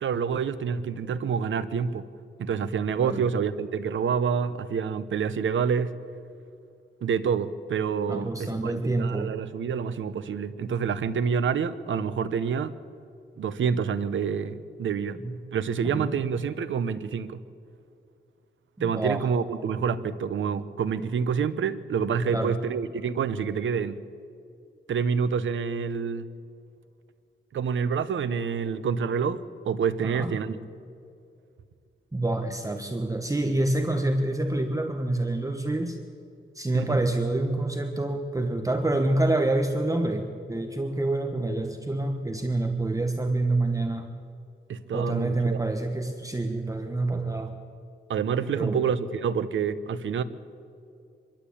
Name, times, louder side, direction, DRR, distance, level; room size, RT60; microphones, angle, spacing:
voice 1, 0.0-2.1 2.4-6.0 7.0-12.7 13.4-15.2 15.5-17.4 18.8-24.0 24.9-26.3 27.5-29.4 29.7-30.6 36.7-37.0 44.7-45.6 48.1-50.2, right 6 dB, 80° right, 12 dB, 0.9 m, -27 dB
voice 2, 8.1-9.3 15.2-15.3 15.9-16.1 18.8-19.3 22.3-22.6 30.0-30.3 32.1-36.0 36.5-44.1 44.9-47.5 48.6-48.8, right 2 dB, 15° right, 4 dB, 1.3 m, -27 dB
25.5 x 12.0 x 8.6 m, 2.4 s
wide cardioid pair, 100°, 20 cm